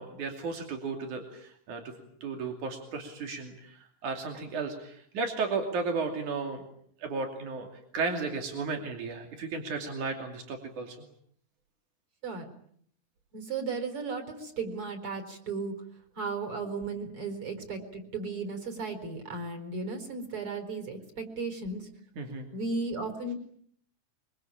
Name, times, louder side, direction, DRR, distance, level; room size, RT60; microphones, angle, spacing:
voice 1, 0.0-1.9 2.2-6.6 7.0-7.7 7.9-11.0 22.2-22.5, right 4 dB, 90° right, 4 dB, 4.2 m, -34 dB
voice 2, 12.2-12.5 13.3-15.7 16.2-21.9 22.5-23.3, right 3 dB, 45° right, 6 dB, 5.0 m, -35 dB
25.0 x 24.0 x 8.8 m, 0.64 s
omnidirectional pair, 3.4 m